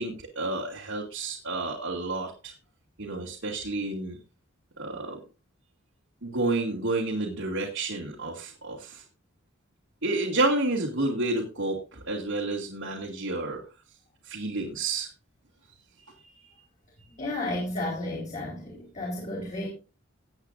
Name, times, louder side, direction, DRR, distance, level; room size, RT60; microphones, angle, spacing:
voice 1, 0.0-2.5 3.0-4.2 4.8-5.2 6.2-9.0 10.0-13.6 14.3-15.1, right 2 dB, 85° right, -2 dB, 2.5 m, -30 dB
voice 2, 17.1-19.7, left 1 dB, 35° left, -3 dB, 4.1 m, -32 dB
18.5 x 8.2 x 2.6 m, 0.31 s
head